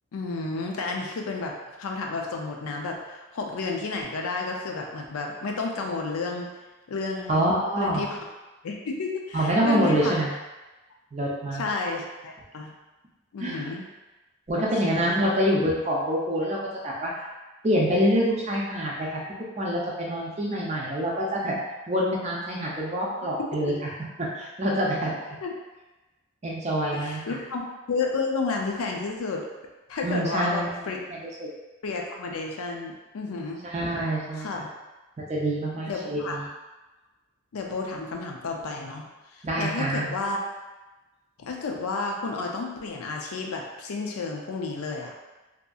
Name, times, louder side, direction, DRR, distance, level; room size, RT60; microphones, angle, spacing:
voice 1, 0.1-6.5 6.9-7.4 7.8-8.2 8.6-10.2 11.5-12.7 13.3-13.9 14.6-15.2 25.4-25.5 26.9-27.6 27.9-29.4 29.9-31.0 31.8-33.6 34.4-34.7 35.9-36.4 37.5-40.4 41.4-45.1, left 3 dB, 80° left, 1 dB, 0.4 m, -31 dB
voice 2, 7.3-8.0 9.3-10.3 11.1-11.7 13.4-13.6 14.5-16.6 16.8-17.2 17.6-19.2 19.6-21.5 21.9-23.7 24.2-25.1 26.4-27.4 30.0-31.5 33.6-34.5 35.2-36.4 39.4-40.1, equal, 30° right, -4 dB, 0.5 m, -26 dB
2.7 x 2.5 x 2.3 m, 1.1 s
head